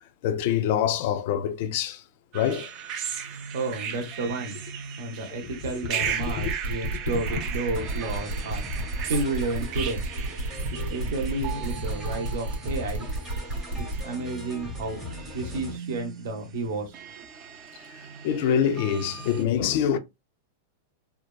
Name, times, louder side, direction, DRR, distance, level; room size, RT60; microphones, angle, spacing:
voice 1, 0.2-2.0 2.3-2.7 5.4-5.5 6.0-6.5 6.8-7.2 10.8-10.9 18.2-20.0, left 9 dB, 45° left, 0.4 m, -26 dB
sound 1, 2.3-19.5, right 8 dB, 30° right, 0.4 m, -37 dB
voice 2, 3.5-4.6 5.0-10.1 10.7-13.1 13.8-17.2, right 2 dB, 60° right, 0.8 m, -32 dB
sound 2, 6.2-14.0, right 1 dB, 90° right, 1.3 m, -31 dB
sound 3, 7.7-15.8, left 1 dB, 10° right, 0.8 m, -40 dB
2.7 x 2.3 x 2.2 m
supercardioid pair, 165°, 0 cm